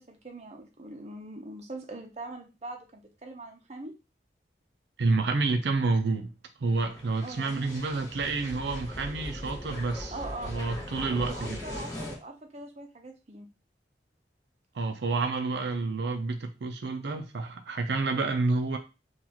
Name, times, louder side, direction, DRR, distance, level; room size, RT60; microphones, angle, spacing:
voice 1, 0.0-3.9 7.2-7.7 10.1-10.8 11.3-13.5, right 2 dB, 40° right, 0.7 m, -42 dB
voice 2, 5.0-6.3 6.6-10.1 10.5-11.6 14.7-18.8, right 3 dB, 75° right, 0.5 m, -29 dB
sound 1, 6.6-12.2, left 1 dB, 20° left, 1.0 m, -40 dB
3.9 x 2.4 x 2.9 m
head